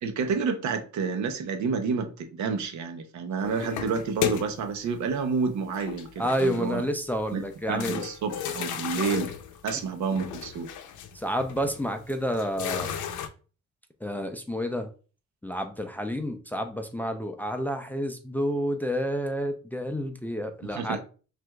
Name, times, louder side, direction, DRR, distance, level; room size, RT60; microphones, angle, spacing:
voice 1, 0.0-6.9 7.3-9.3 9.6-10.7 20.7-21.0, right 5 dB, 70° right, 0.8 m, -29 dB
sound 1, 3.4-4.8 5.7-6.8 7.2-7.3 7.8-13.3, left 9 dB, 80° left, 0.6 m, -34 dB
voice 2, 6.2-8.0 11.1-12.9 14.0-14.9 15.4-21.0, equal, 5° left, 0.4 m, -29 dB
6.0 x 2.5 x 2.3 m
cardioid pair, 90°, 30 cm